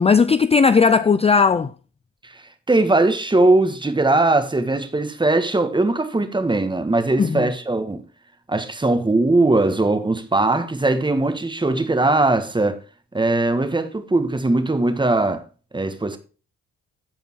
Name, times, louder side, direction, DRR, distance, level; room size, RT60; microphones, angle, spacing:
voice 1, 0.0-1.7 7.2-7.5, left 5 dB, 20° left, 0.5 m, -16 dB
voice 2, 2.7-8.0 8.5-12.8 13.1-15.4 15.7-16.2, right 2 dB, 15° right, 1.7 m, -20 dB
15.0 x 5.2 x 4.6 m
cardioid pair, 90°, 30 cm